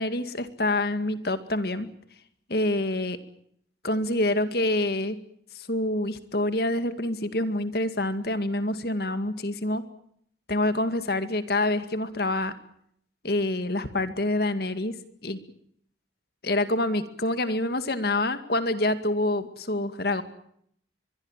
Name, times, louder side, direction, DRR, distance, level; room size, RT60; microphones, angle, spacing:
voice 1, 0.0-1.9 2.5-3.2 3.8-5.2 5.6-9.9 10.5-12.5 13.2-15.0 15.2-15.4 16.4-20.2, left 1 dB, 55° left, 11 dB, 2.2 m, -26 dB
24.0 x 22.5 x 7.4 m, 0.69 s
head